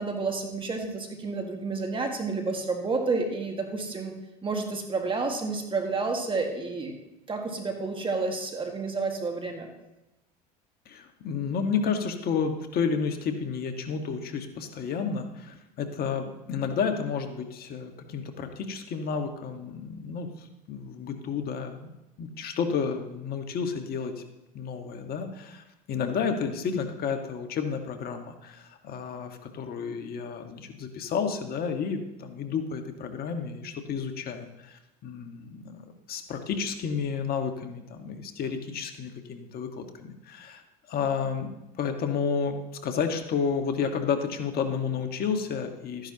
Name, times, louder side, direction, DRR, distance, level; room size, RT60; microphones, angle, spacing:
voice 1, 0.0-4.2 4.4-6.9 7.3-9.7, right 3 dB, 25° right, 3 dB, 1.8 m, -30 dB
voice 2, 10.8-21.9 22.2-24.1 24.5-40.6 40.9-41.5 41.8-46.1, left 6 dB, 45° left, 6 dB, 1.6 m, -31 dB
13.5 x 10.5 x 2.9 m, 0.94 s
hypercardioid pair, 85°, 21 cm